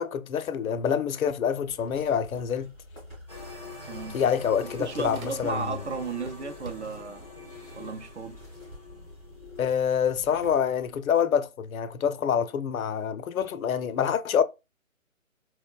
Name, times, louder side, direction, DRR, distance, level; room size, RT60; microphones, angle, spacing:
voice 1, 0.0-2.7 4.1-5.7 9.6-14.4, left 8 dB, 85° left, 0.5 m, -26 dB
sound 1, 1.6-11.0, left 1 dB, 10° right, 0.9 m, -48 dB
sound 2, 3.1-3.2 3.5-5.8 6.1-7.2, right 2 dB, 90° right, 1.2 m, -48 dB
sound 3, 3.3-9.7, left 4 dB, 30° left, 0.5 m, -45 dB
voice 2, 3.9-4.2 4.6-7.3 7.8-8.4, right 4 dB, 55° right, 0.6 m, -34 dB
4.7 x 2.1 x 2.3 m
hypercardioid pair, 170°, 41 cm